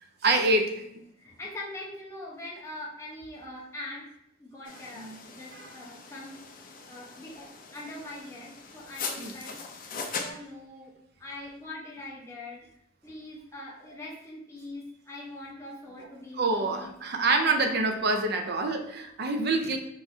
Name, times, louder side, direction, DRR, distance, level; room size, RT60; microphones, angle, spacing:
voice 1, 0.2-0.8 5.0-5.2 5.5-5.7 9.2-9.3 16.4-19.8, right 2 dB, 60° right, 6 dB, 0.6 m, -26 dB
voice 2, 1.2-4.1 4.4-6.4 6.9-10.9 11.2-12.7 13.0-16.9 17.4-17.8 19.6-19.7, left 1 dB, 15° left, -4 dB, 1.0 m, -43 dB
sound 1, 4.6-10.3, left 5 dB, 45° left, 0.6 m, -40 dB
5.5 x 3.1 x 2.7 m, 0.77 s
head